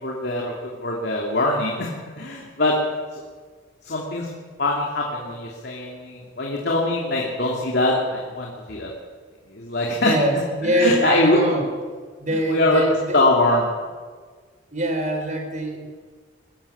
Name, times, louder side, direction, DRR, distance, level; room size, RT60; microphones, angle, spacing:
voice 1, 0.0-1.9 2.2-2.8 3.1-3.2 3.8-4.3 4.6-8.9 9.5-10.1 10.6-11.7 12.3-12.8 13.1-13.7, left 2 dB, 55° left, -2 dB, 2.9 m, -23 dB
voice 2, 10.0-11.6 12.2-13.2 14.7-15.9, right 1 dB, 35° right, 3 dB, 4.2 m, -23 dB
20.5 x 15.0 x 8.6 m, 1.5 s
head